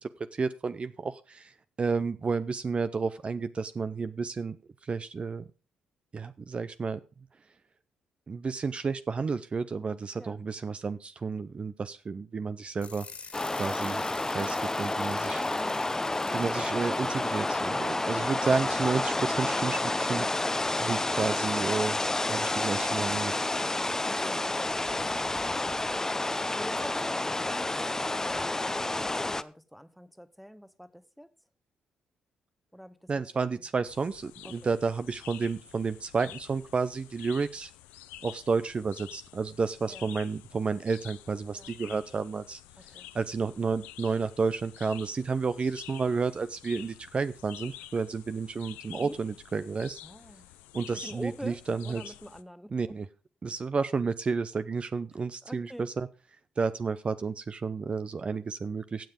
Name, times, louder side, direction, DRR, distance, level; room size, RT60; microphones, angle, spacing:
voice 1, 0.0-4.6 4.8-5.4 6.1-7.0 8.3-13.1 13.6-15.4 16.3-22.0 22.3-23.3 33.1-37.7 38.2-50.0 50.7-52.0 52.7-53.1 53.4-56.1 56.6-59.1, right 4 dB, 40° right, 0.6 m, -31 dB
sound 1, 12.8-18.6, left 5 dB, 50° left, 2.2 m, -48 dB
sound 2, 13.3-29.4, left 2 dB, 15° left, 0.7 m, -30 dB
voice 2, 15.5-15.9 23.7-25.9 26.2-31.3 32.7-33.6 34.4-34.7 39.9-40.1 41.5-41.7 42.8-43.1 49.0-49.2 50.0-50.5 50.9-53.0 55.4-55.9, equal, ahead, 1.1 m, -46 dB
sound 3, 33.9-52.4, left 14 dB, 85° left, 0.6 m, -49 dB
15.0 x 7.3 x 5.1 m
supercardioid pair, 50°, 3 cm